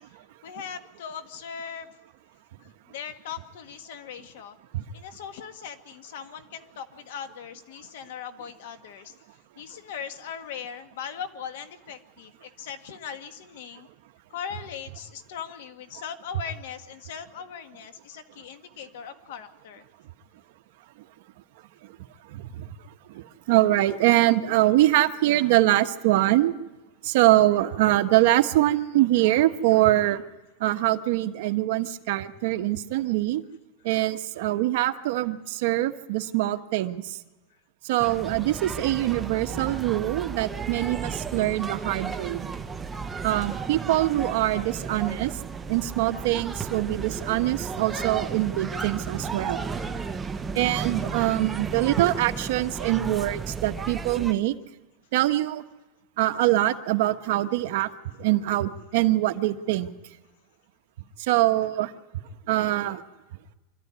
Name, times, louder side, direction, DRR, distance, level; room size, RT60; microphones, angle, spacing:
voice 1, 0.0-1.9 2.6-4.6 4.9-9.1 9.6-13.9 14.3-19.8, left 8 dB, 70° left, 8 dB, 1.8 m, -39 dB
voice 2, 22.3-22.7 23.1-26.5 27.0-30.2 30.6-33.4 33.8-37.2 37.8-42.5 43.2-45.3 45.7-49.6 50.5-54.5 55.1-55.6 56.2-57.9 58.2-59.9 61.2-61.9 62.5-63.0, right 16 dB, 60° right, 8 dB, 1.1 m, -23 dB
sound 1, 38.0-54.3, right 5 dB, 10° right, 0.8 m, -34 dB
25.0 x 13.5 x 9.7 m, 1.1 s
supercardioid pair, 165°, 0 cm